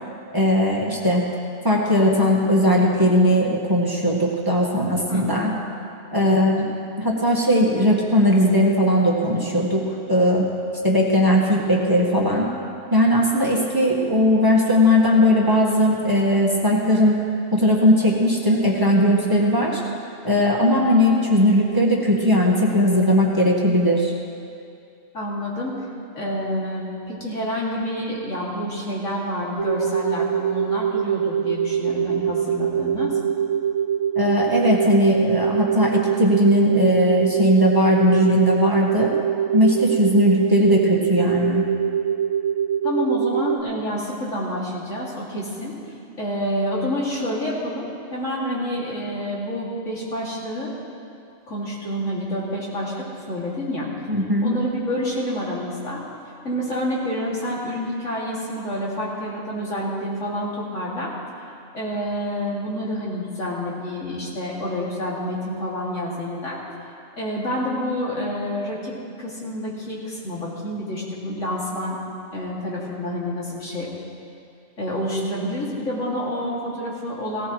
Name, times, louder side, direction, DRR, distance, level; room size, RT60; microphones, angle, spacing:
voice 1, 0.3-1.2 1.6-5.5 6.1-6.7 7.0-10.4 10.8-12.5 12.9-17.2 17.5-19.8 20.2-24.1 34.1-39.1 39.5-41.6 54.1-54.5, equal, 20° right, -3 dB, 1.5 m, -18 dB
voice 2, 5.1-5.6 6.1-6.5 25.1-25.9 26.1-33.2 42.8-45.8 46.2-50.7 51.5-53.9 54.4-56.0 56.4-61.1 61.7-66.6 67.2-72.0 72.3-73.9 74.8-77.5, equal, 85° left, -5 dB, 2.9 m, -28 dB
sound 1, 29.6-43.6, right 8 dB, 85° right, 1.2 m, -23 dB
18.5 x 16.5 x 3.1 m, 2.5 s
omnidirectional pair, 1.3 m